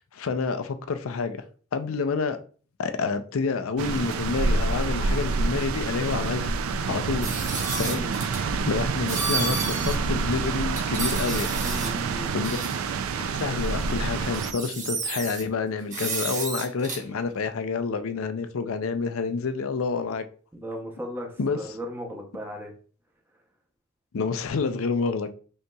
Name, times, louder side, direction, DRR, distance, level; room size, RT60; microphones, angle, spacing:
voice 1, 0.0-1.4 1.7-2.4 2.8-6.5 6.9-7.4 7.7-11.5 12.3-12.6 13.1-20.2 21.4-21.6 24.1-25.3, left 4 dB, 85° left, 0.5 m, -28 dB
sound 1, 3.8-14.5, right 4 dB, 90° right, 0.4 m, -27 dB
sound 2, 7.2-8.4 9.1-10.0 10.3-10.4 10.7-12.0 12.4-12.8 13.8-13.9 14.2-15.4 15.9-17.0, right 4 dB, 35° right, 1.1 m, -31 dB
voice 2, 7.8-8.1 11.6-12.4 13.5-13.6 20.5-22.7, equal, 10° right, 0.7 m, -36 dB
5.2 x 2.9 x 2.3 m
head